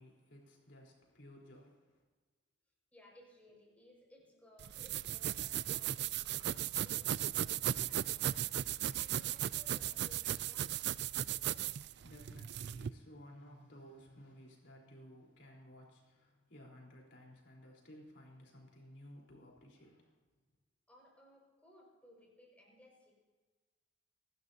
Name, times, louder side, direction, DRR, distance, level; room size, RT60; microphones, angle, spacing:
voice 1, 0.0-2.0 11.5-20.1, equal, 70° left, -2 dB, 4.1 m, -57 dB
voice 2, 2.9-10.8 20.9-23.1, left 1 dB, 10° left, -3 dB, 5.7 m, -62 dB
sound 1, 4.6-12.9, right 11 dB, 65° right, 0.4 m, -36 dB
26.5 x 12.5 x 2.8 m, 1.3 s
head